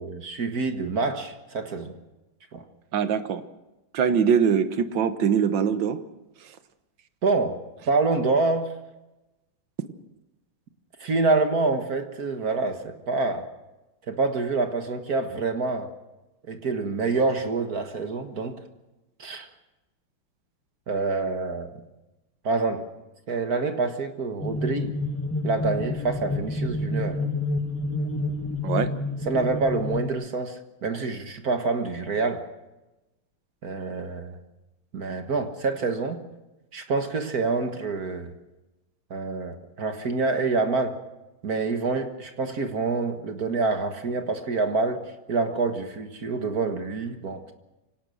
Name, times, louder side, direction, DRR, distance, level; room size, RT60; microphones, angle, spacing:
voice 1, 0.0-1.9 2.5-2.6 7.2-7.6 7.9-8.7 11.0-13.5 14.1-15.9 16.5-18.6 19.2-19.5 20.9-21.7 22.4-22.9 23.3-25.0 25.4-27.3 29.3-32.4 33.6-34.4 34.9-36.2 36.7-38.3 39.1-41.0 41.4-45.0 45.3-47.5, right 3 dB, 50° right, 6 dB, 1.8 m, -26 dB
voice 2, 2.9-3.4 3.9-6.0 28.6-28.9, right 7 dB, 65° right, 11 dB, 1.8 m, -22 dB
sound 1, 24.4-30.1, left 2 dB, 10° left, 0.9 m, -29 dB
25.0 x 18.0 x 6.4 m, 1.0 s
omnidirectional pair, 2.2 m